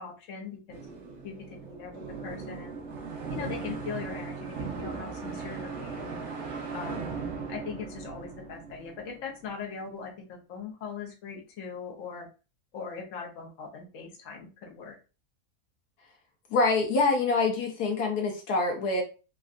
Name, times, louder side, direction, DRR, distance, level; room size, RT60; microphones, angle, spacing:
voice 1, 0.0-2.7 3.3-6.2 6.7-7.1 7.5-12.3 12.7-15.0, left 5 dB, 60° left, 0 dB, 1.1 m, -40 dB
sound 1, 0.7-9.5, right 5 dB, 60° right, 0.9 m, -38 dB
voice 2, 16.5-19.0, left 3 dB, 80° left, 1 dB, 1.3 m, -25 dB
3.6 x 2.2 x 2.4 m, 0.33 s
omnidirectional pair, 1.6 m